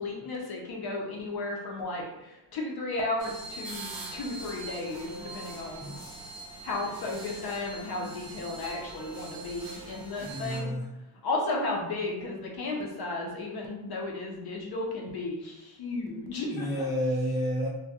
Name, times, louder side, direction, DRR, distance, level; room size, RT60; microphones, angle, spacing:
voice 1, 0.0-5.9 6.6-10.7 11.2-16.8, left 2 dB, 55° left, 0 dB, 0.5 m, -34 dB
sound 1, 3.2-10.6, right 2 dB, 50° right, 0.6 m, -42 dB
voice 2, 10.2-10.9 16.5-17.7, equal, 10° right, -7 dB, 0.3 m, -30 dB
2.3 x 2.1 x 2.7 m, 0.92 s
wide cardioid pair, 165°, 47 cm